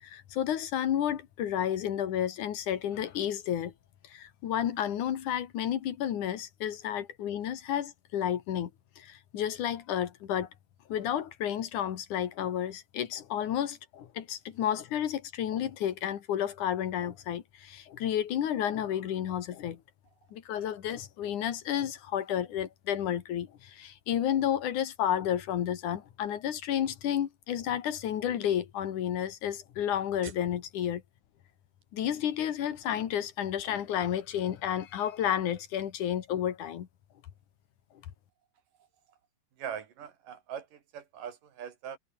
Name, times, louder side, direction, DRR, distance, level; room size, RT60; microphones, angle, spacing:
voice 1, 0.0-3.7 4.0-8.7 9.0-10.5 10.9-19.8 20.3-31.0 31.9-36.9, left 10 dB, 55° left, 2.6 m, -31 dB
voice 2, 39.6-42.0, right 8 dB, 55° right, 3.6 m, -41 dB
omnidirectional pair, 4.9 m